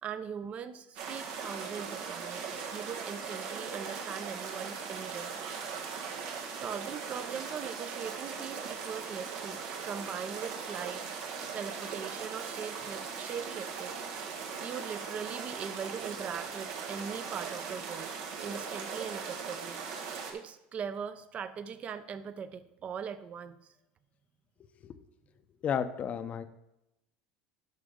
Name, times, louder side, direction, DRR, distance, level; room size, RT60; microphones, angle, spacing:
voice 1, 0.0-5.4 6.6-14.0 14.4-20.0 20.3-23.7, right 7 dB, 35° right, 13 dB, 0.7 m, -41 dB
sound 1, 1.0-20.3, right 5 dB, 80° right, 1.7 m, -39 dB
voice 2, 25.6-26.5, left 8 dB, 40° left, 11 dB, 0.7 m, -32 dB
11.5 x 6.1 x 3.7 m, 0.91 s
supercardioid pair, 115°, 4 cm